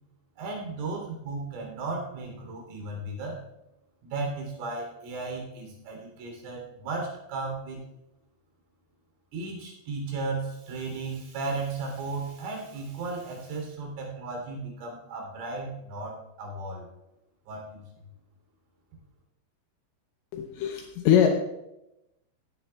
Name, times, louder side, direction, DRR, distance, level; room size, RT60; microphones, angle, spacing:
voice 1, 0.4-3.4 4.0-7.8 9.3-16.9 17.5-17.8, right 3 dB, 70° right, 0 dB, 5.5 m, -35 dB
voice 2, 20.3-21.3, left 9 dB, 80° left, 3 dB, 2.7 m, -22 dB
17.5 x 13.5 x 2.3 m, 0.90 s
omnidirectional pair, 6.0 m